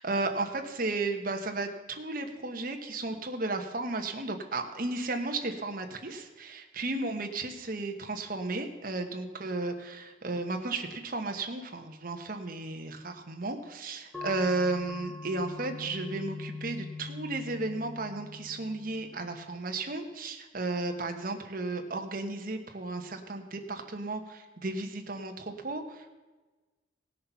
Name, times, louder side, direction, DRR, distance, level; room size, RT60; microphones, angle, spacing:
voice 1, 0.0-26.1, right 2 dB, 45° right, 5 dB, 1.2 m, -34 dB
sound 1, 14.1-19.3, left 3 dB, 5° left, 1.2 m, -42 dB
17.5 x 6.6 x 5.7 m, 1.2 s
head